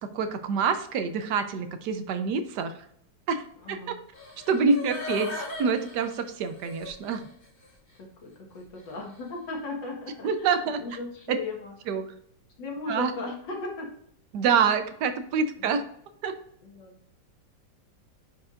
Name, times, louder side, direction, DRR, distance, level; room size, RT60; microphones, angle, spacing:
voice 1, 0.0-2.7 3.3-4.0 4.5-7.3 10.2-10.8 11.3-11.4 11.9-12.1 12.9-13.1 14.3-15.8 16.2-16.4, right 5 dB, 70° right, 9 dB, 1.2 m, -26 dB
voice 2, 3.6-4.0 8.2-11.7 12.6-13.9 15.6-15.7 16.6-17.0, left 2 dB, 75° left, 0 dB, 2.2 m, -37 dB
sound 1, 4.1-7.2 7.6-7.7, left 3 dB, 30° left, 1.4 m, -37 dB
9.6 x 4.7 x 2.5 m, 0.69 s
omnidirectional pair, 2.0 m